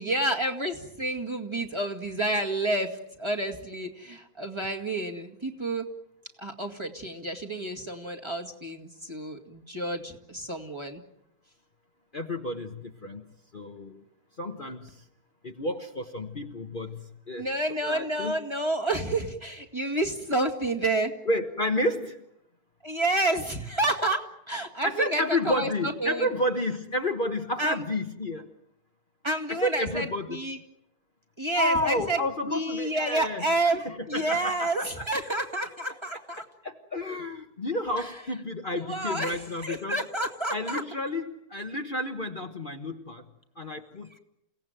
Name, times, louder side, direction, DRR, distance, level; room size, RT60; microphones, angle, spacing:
voice 1, 0.0-5.9 6.4-11.0 17.4-21.1 22.8-26.3 27.6-27.8 29.2-30.6 31.4-32.2 32.5-33.8 34.1-36.4 38.7-40.8, right 2 dB, 20° right, 1 dB, 2.1 m, -29 dB
voice 2, 12.1-13.3 13.5-14.0 14.4-15.0 15.4-17.5 17.8-18.4 21.3-22.2 24.8-28.5 29.5-30.4 31.5-33.4 33.7-35.1 36.4-40.0 40.5-43.2 43.6-44.2, left 1 dB, 35° left, 4 dB, 1.3 m, -31 dB
29.0 x 17.0 x 9.1 m, 0.80 s
omnidirectional pair, 1.6 m